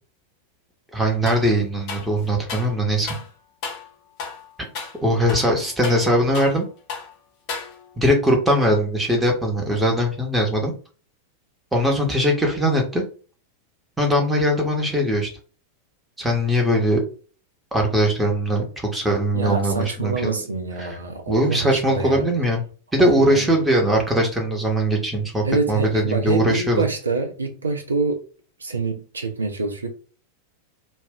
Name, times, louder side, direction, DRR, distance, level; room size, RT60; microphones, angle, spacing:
voice 1, 0.9-3.2 5.0-6.7 8.0-10.7 11.7-13.0 14.0-15.3 16.2-17.0 17.7-20.4 20.8-21.0 21.3-22.6 22.9-26.8, equal, 5° right, 0.9 m, -20 dB
sound 1, 1.3-1.5 1.9-2.7 3.1-3.3 3.6-3.9 4.2-4.4 4.7-5.0 5.3-6.6 6.9-7.1 7.5-8.0, left 5 dB, 40° left, 0.7 m, -34 dB
voice 2, 19.3-22.2 23.0-23.5 25.4-28.2 28.6-29.9, right 4 dB, 75° right, 0.5 m, -26 dB
2.4 x 2.0 x 3.5 m
figure-of-eight pair, 90°, 0 cm